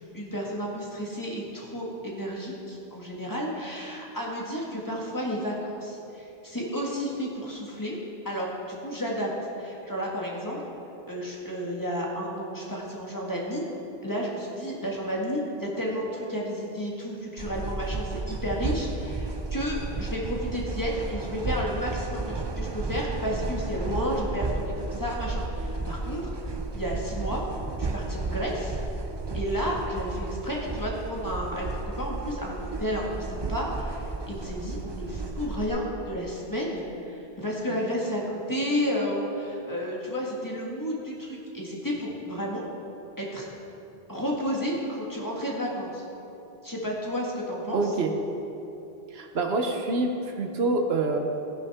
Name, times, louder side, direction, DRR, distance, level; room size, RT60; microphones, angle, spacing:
voice 1, 0.1-8.0 8.3-9.3 9.6-10.6 11.1-13.7 14.0-26.3 26.7-27.4 27.8-28.8 29.3-42.7 43.2-43.5 44.1-46.0 46.6-47.8, equal, 20° left, -3 dB, 1.8 m, -32 dB
sound 1, 17.4-35.7, right 3 dB, 35° right, 0.5 m, -33 dB
voice 2, 47.7-48.1 49.1-51.2, right 3 dB, 80° right, 4 dB, 1.2 m, -26 dB
16.0 x 10.5 x 3.6 m, 2.9 s
omnidirectional pair, 1.0 m